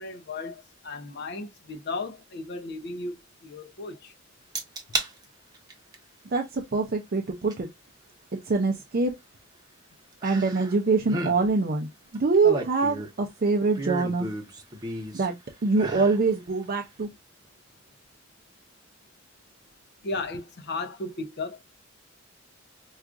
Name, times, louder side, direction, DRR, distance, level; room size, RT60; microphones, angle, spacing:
voice 1, 0.0-4.1 20.0-21.6, left 3 dB, 50° left, 0.6 m, -35 dB
sound 1, 4.5-5.1 5.5-5.9 7.5-7.6 10.2-10.8 11.0-11.4 12.1-13.2 13.7-15.3 15.7-16.2 16.6-16.7, right 2 dB, 20° right, 0.8 m, -33 dB
voice 2, 6.3-7.7 8.3-9.1 10.2-14.3 15.1-15.4 15.6-17.1, right 3 dB, 45° right, 0.5 m, -24 dB
4.6 x 2.4 x 2.4 m
head